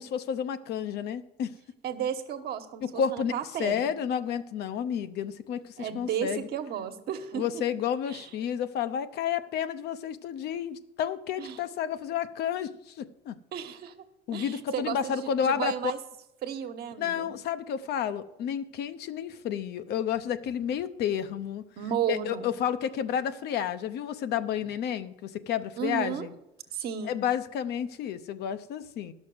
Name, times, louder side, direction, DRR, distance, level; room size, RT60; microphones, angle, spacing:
voice 1, 0.0-1.5 2.8-3.3 3.6-6.5 7.3-13.4 14.3-15.7 17.0-21.6 22.1-26.3 27.0-29.1, left 8 dB, 75° left, 11 dB, 0.8 m, -31 dB
voice 2, 1.8-3.9 5.8-7.6 8.1-8.3 11.4-11.6 13.5-13.9 14.3-16.0 16.4-17.3 21.8-22.5 25.8-26.3 26.7-27.2, right 9 dB, 70° right, 7 dB, 1.2 m, -33 dB
11.5 x 6.3 x 7.8 m, 0.88 s
cardioid pair, 110°, 17 cm